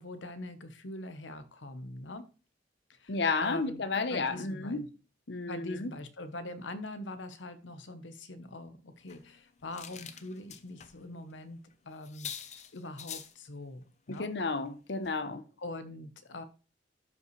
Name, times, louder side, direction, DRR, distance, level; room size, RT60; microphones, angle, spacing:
voice 1, 0.0-2.2 2.9-4.9 5.4-14.3 15.6-16.4, left 2 dB, 90° left, 1.0 m, -43 dB
voice 2, 3.1-4.8 5.3-5.9 14.1-15.4, left 3 dB, 65° left, 0.8 m, -32 dB
sound 1, 9.0-11.0 11.3-11.4 11.7-11.8 12.0-13.4 14.1-14.3 14.7-14.8 15.0-15.1, left 8 dB, 40° left, 0.7 m, -46 dB
12.0 x 5.5 x 3.2 m
head